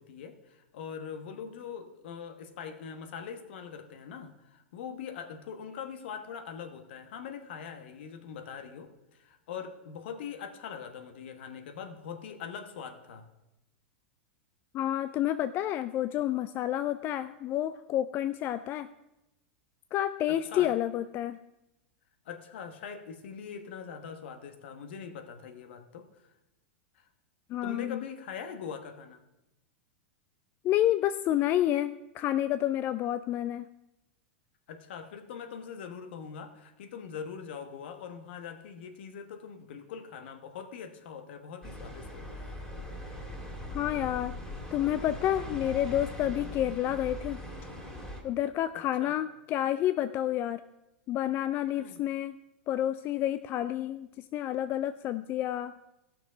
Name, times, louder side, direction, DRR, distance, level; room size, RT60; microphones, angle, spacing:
voice 1, 0.0-13.3 20.3-20.7 22.2-26.1 26.9-27.1 27.6-29.2 34.7-42.6 45.5-45.7 48.7-49.2 51.8-52.0, left 7 dB, 65° left, 8 dB, 1.2 m, -42 dB
voice 2, 14.7-18.9 19.9-21.4 27.5-28.0 30.6-33.7 43.7-44.3 44.7-47.4 48.2-50.6 51.1-52.4 52.7-55.7, left 12 dB, 35° left, 12 dB, 0.3 m, -29 dB
sound 1, 41.6-48.2, left 1 dB, 10° left, 2.3 m, -40 dB
15.0 x 6.1 x 5.0 m, 0.93 s
hypercardioid pair, 100°, 6 cm